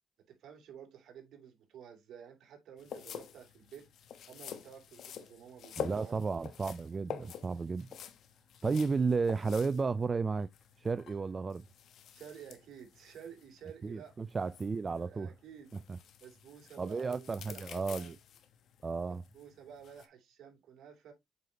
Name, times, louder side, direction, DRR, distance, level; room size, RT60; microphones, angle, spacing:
voice 1, 0.3-3.9 4.3-6.2 12.1-14.1 15.0-15.7 16.2-18.1 19.1-21.1, right 8 dB, 75° right, 2.8 m, -52 dB
sound 1, 2.8-20.1, left 8 dB, 70° left, 1.0 m, -48 dB
voice 2, 5.8-7.9 8.6-10.5 10.8-11.6 13.8-15.3 15.9-16.0 16.8-18.2 18.8-19.2, right 4 dB, 35° right, 0.4 m, -33 dB
8.0 x 4.9 x 2.8 m
cardioid pair, 90°, 0 cm